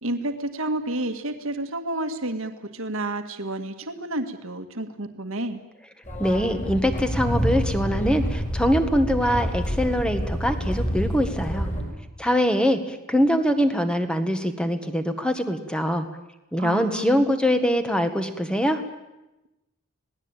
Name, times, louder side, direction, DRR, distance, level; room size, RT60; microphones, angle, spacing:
voice 1, 0.0-5.6 16.6-17.3, right 1 dB, 65° right, 7 dB, 1.9 m, -30 dB
sound 1, 6.0-11.8, equal, 35° left, 6.6 m, -27 dB
voice 2, 6.2-11.7 12.2-16.1 16.5-18.8, equal, 5° left, 8 dB, 1.8 m, -23 dB
27.0 x 18.5 x 9.0 m, 0.96 s
head